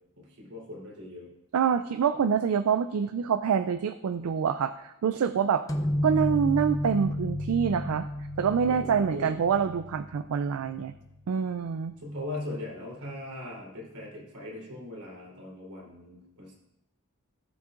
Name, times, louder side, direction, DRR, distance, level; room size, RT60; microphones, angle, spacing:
voice 1, 0.4-1.3 8.7-9.3 12.0-16.5, left 1 dB, 85° right, -4 dB, 3.5 m, -39 dB
voice 2, 1.5-5.6 6.0-8.1 8.4-10.9 11.3-11.9, right 7 dB, 70° right, 11 dB, 0.3 m, -26 dB
sound 1, 5.7-11.2, left 1 dB, 15° left, 0.6 m, -32 dB
16.5 x 7.1 x 2.5 m, 0.90 s
head